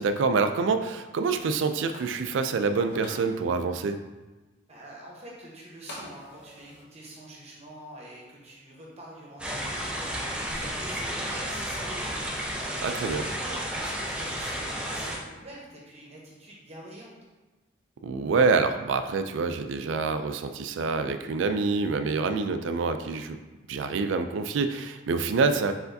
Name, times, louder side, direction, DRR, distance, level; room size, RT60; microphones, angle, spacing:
voice 1, 0.0-4.0 12.8-13.2 18.0-23.4 23.7-25.7, right 4 dB, 65° right, 9 dB, 0.3 m, -26 dB
sound 1, 1.9-3.2 5.9-6.8, left 1 dB, 55° left, 0.8 m, -45 dB
voice 2, 4.7-12.3 12.6-17.1, right 1 dB, 30° right, -3 dB, 1.0 m, -45 dB
sound 2, 9.4-15.2, equal, 5° right, 0.5 m, -32 dB
4.5 x 4.2 x 2.7 m, 1.2 s
head